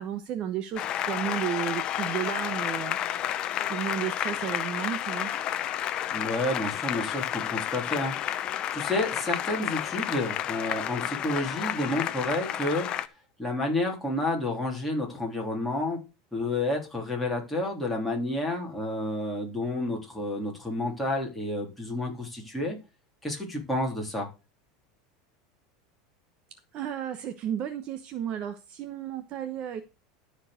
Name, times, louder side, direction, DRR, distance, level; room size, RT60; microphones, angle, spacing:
voice 1, 0.0-3.0 3.7-5.3 26.7-29.8, right 10 dB, 35° right, 9 dB, 0.9 m, -33 dB
Applause, 0.8-13.1, left 11 dB, 30° left, 0.7 m, -31 dB
voice 2, 6.1-12.9 13.4-16.0 16.3-22.8 23.2-24.3, left 2 dB, 5° left, -2 dB, 3.4 m, -30 dB
12.5 x 4.6 x 6.4 m, 0.29 s
supercardioid pair, 155°, 3 cm